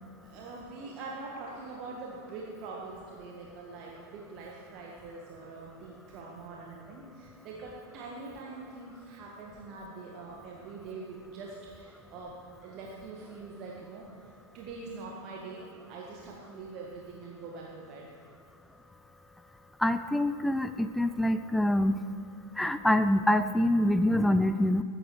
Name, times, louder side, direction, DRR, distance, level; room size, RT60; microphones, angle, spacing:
voice 1, 0.2-14.1 14.5-18.1, right 3 dB, 40° right, -3 dB, 1.8 m, -44 dB
voice 2, 19.8-21.9 22.6-24.8, left 1 dB, 5° left, 11 dB, 0.5 m, -25 dB
20.5 x 9.9 x 4.9 m, 2.2 s
figure-of-eight pair, 90°, 0 cm